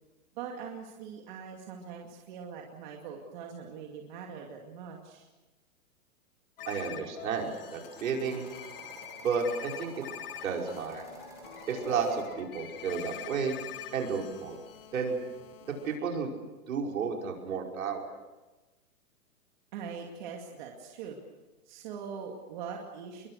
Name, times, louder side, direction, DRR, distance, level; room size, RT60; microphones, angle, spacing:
voice 1, 0.3-5.3 19.7-21.2 21.7-23.3, right 6 dB, 35° right, 1 dB, 2.4 m, -42 dB
sound 1, 6.6-16.0, left 10 dB, 40° left, 1.9 m, -45 dB
voice 2, 6.7-8.5 9.2-9.9 10.4-11.0 11.7-13.6 13.9-14.6 14.9-15.2 15.8-16.3 16.7-18.0, right 5 dB, 70° right, 1 dB, 5.6 m, -32 dB
sound 2, 7.1-12.2, right 2 dB, 5° right, 4.8 m, -50 dB
26.5 x 22.5 x 6.5 m, 1.1 s
hypercardioid pair, 175°, 43 cm